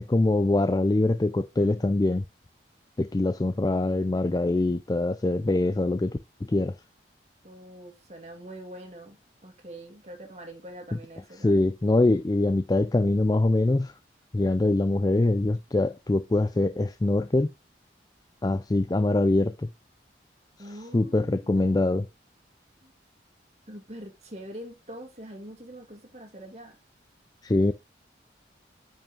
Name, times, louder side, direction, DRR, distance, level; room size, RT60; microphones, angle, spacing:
voice 1, 0.0-2.2 3.0-6.7 11.4-13.9 14.3-17.5 18.4-19.7 20.9-22.1 27.4-27.7, left 2 dB, 20° left, 0.3 m, -24 dB
voice 2, 7.4-11.6 20.6-22.0 22.8-22.9 23.7-26.7, right 1 dB, 35° right, 2.2 m, -44 dB
9.2 x 5.4 x 3.6 m
head